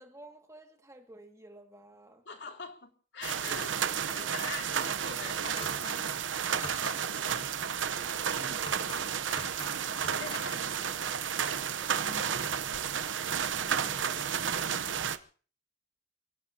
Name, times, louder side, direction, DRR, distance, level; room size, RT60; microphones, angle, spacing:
voice 1, 0.0-2.2, right 1 dB, 15° right, 4 dB, 2.0 m, -53 dB
voice 2, 2.3-3.8 4.1-6.0 8.4-8.7 10.0-10.8 12.0-12.3 13.5-14.8, left 4 dB, 70° left, 3 dB, 2.7 m, -45 dB
sound 1, 3.2-15.2, right 7 dB, 85° right, 0.8 m, -32 dB
sound 2, 5.6-6.0 6.5-7.0 8.5-9.0 9.3-9.7 10.0-10.4, left 2 dB, 30° left, 5.3 m, -43 dB
29.5 x 17.0 x 2.8 m, 0.42 s
head